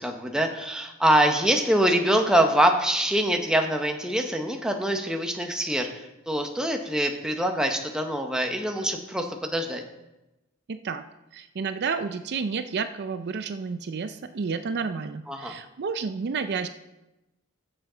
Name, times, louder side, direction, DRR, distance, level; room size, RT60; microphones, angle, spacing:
voice 1, 0.0-9.8 15.3-15.5, right 1 dB, 5° right, 3 dB, 0.8 m, -24 dB
voice 2, 10.7-11.0 11.3-16.7, right 5 dB, 50° right, 10 dB, 0.4 m, -30 dB
14.5 x 6.9 x 3.9 m, 0.97 s
head